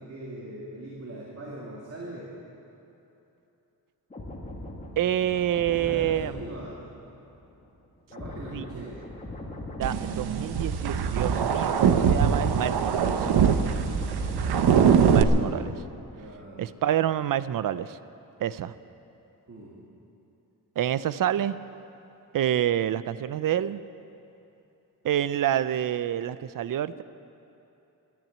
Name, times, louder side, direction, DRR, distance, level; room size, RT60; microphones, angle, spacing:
voice 1, 0.0-2.3 5.2-6.8 8.1-9.0 16.2-16.6 19.5-19.8, right 1 dB, 40° right, -4 dB, 2.1 m, -41 dB
sound 1, 4.1-11.6 11.9-15.6 15.9-16.1, left 1 dB, 20° left, 1.7 m, -42 dB
voice 2, 5.0-6.4 8.5-8.8 9.8-13.3 15.0-15.8 16.6-18.0 18.4-18.7 20.8-21.6 22.3-23.8 25.0-27.0, right 11 dB, 60° right, 15 dB, 0.5 m, -28 dB
sound 2, 9.8-15.2, right 7 dB, 75° right, 0.8 m, -22 dB
14.0 x 10.5 x 8.7 m, 2.9 s
wide cardioid pair, 160°, 39 cm